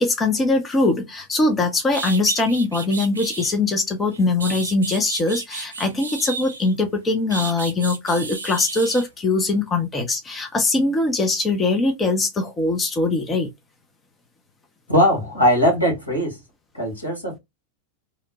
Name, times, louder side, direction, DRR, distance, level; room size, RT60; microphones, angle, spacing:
voice 1, 0.0-13.5, left 2 dB, 20° left, 0.6 m, -22 dB
sound 1, 1.5-1.6 1.9-3.5 4.1-6.8 7.3-9.1, right 4 dB, 75° right, 0.5 m, -32 dB
voice 2, 14.9-16.4 16.7-17.4, equal, 85° left, 1.3 m, -19 dB
2.8 x 2.1 x 2.6 m
figure-of-eight pair, 90°, 0 cm